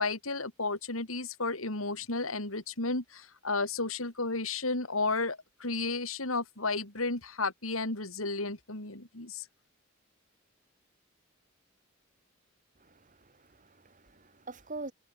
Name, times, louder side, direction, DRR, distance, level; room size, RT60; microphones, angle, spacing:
voice 1, 0.0-9.5, left 3 dB, 90° left, 5.2 m, -33 dB
voice 2, 12.8-14.9, right 2 dB, 40° right, 2.8 m, -45 dB
head